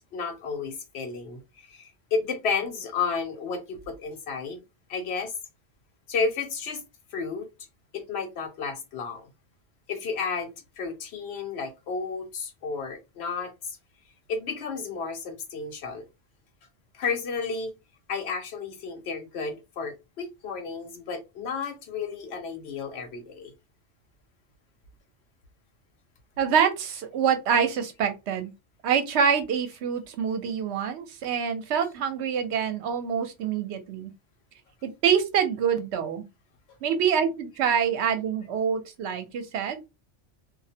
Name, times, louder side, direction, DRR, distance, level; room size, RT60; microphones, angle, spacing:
voice 1, 0.1-4.6 4.9-5.3 6.1-6.8 7.1-7.5 7.9-9.3 9.9-13.8 14.3-16.1 16.9-17.7 18.1-23.5, left 5 dB, 70° left, 0.8 m, -32 dB
voice 2, 26.4-28.5 28.8-34.1 34.8-36.2 36.8-39.8, right 7 dB, 70° right, 0.9 m, -26 dB
2.4 x 2.0 x 2.6 m
omnidirectional pair, 1.2 m